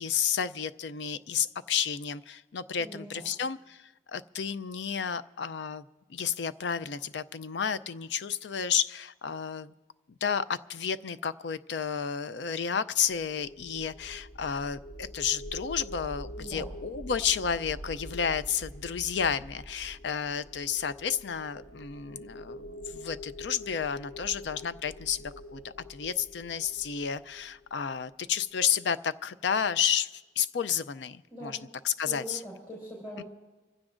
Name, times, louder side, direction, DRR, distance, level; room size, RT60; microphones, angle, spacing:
voice 1, 0.0-5.8 6.1-9.7 10.2-31.6 31.8-32.4 33.2-33.3, left 7 dB, 70° left, 14 dB, 0.4 m, -31 dB
voice 2, 2.8-3.2 16.4-16.7 31.3-31.6 32.0-33.2, equal, 30° left, -5 dB, 4.5 m, -42 dB
sound 1, 13.0-28.1, equal, 55° left, 1.0 m, -45 dB
25.0 x 16.0 x 2.5 m, 1.2 s
head